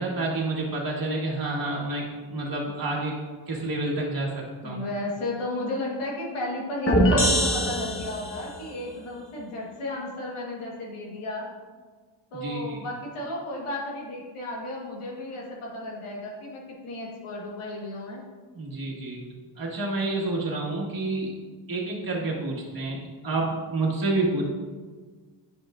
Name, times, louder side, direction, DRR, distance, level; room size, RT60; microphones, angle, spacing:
voice 1, 0.0-3.2 3.5-4.8 12.3-12.8 18.5-19.3 19.6-21.3 21.7-24.5, right 2 dB, 45° right, -3 dB, 1.8 m, -29 dB
voice 2, 4.6-11.5 12.3-18.2, left 1 dB, 80° left, -2 dB, 1.6 m, -34 dB
sound 1, 6.9-8.6, equal, 25° left, 1.2 m, -22 dB
9.4 x 5.4 x 2.5 m, 1.5 s
cardioid pair, 80°, 49 cm